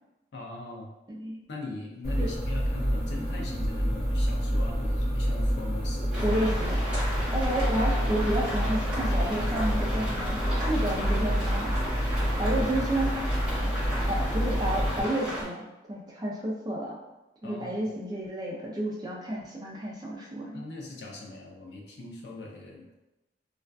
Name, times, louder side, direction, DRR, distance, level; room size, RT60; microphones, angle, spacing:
voice 1, 0.3-0.9 1.5-6.4 17.4-17.9 20.5-22.9, left 2 dB, 80° left, -1 dB, 0.5 m, -40 dB
sound 1, 2.0-15.0, equal, 55° left, 1.1 m, -28 dB
sound 2, 6.1-15.4, equal, 5° right, 1.0 m, -35 dB
voice 2, 6.2-6.9 7.3-10.4 10.7-11.7 12.4-13.2 14.1-17.0 17.4-20.6, right 1 dB, 20° right, -4 dB, 0.4 m, -31 dB
2.5 x 2.4 x 2.2 m, 1.0 s
head